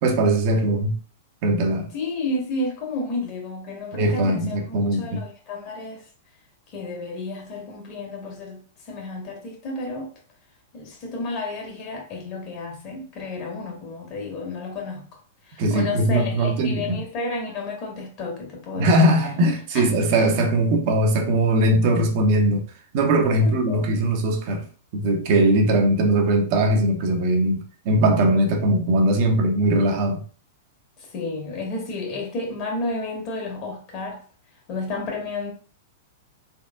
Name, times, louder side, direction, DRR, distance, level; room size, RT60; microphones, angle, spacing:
voice 1, 0.0-1.0 1.4-1.9 3.9-5.2 15.6-17.0 18.7-22.6 22.9-24.7 24.9-30.2, right 1 dB, 50° right, 0.7 m, -20 dB
voice 2, 1.9-6.0 6.7-8.6 8.9-10.1 10.7-15.0 15.5-18.9 19.7-19.8 23.4-23.8 31.1-34.2 34.7-35.5, left 2 dB, 45° left, 1.7 m, -31 dB
3.7 x 3.5 x 2.3 m
hypercardioid pair, 105°, 0 cm